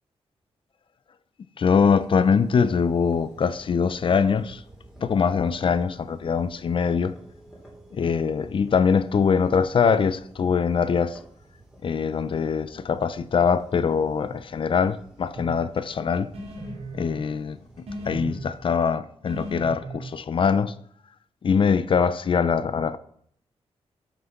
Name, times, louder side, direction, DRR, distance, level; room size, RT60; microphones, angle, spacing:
voice 1, 1.6-4.6 5.0-7.2 7.9-11.2 11.8-16.3 16.9-20.7 21.4-23.0, left 6 dB, 50° left, 0.7 m, -23 dB
sound 1, 1.8-18.9, right 1 dB, 5° right, 3.2 m, -51 dB
sound 2, 15.3-15.6 16.3-17.3 17.9-18.5 19.3-20.1, right 1 dB, 75° right, 2.8 m, -36 dB
12.5 x 6.2 x 5.9 m
wide cardioid pair, 120°, 11 cm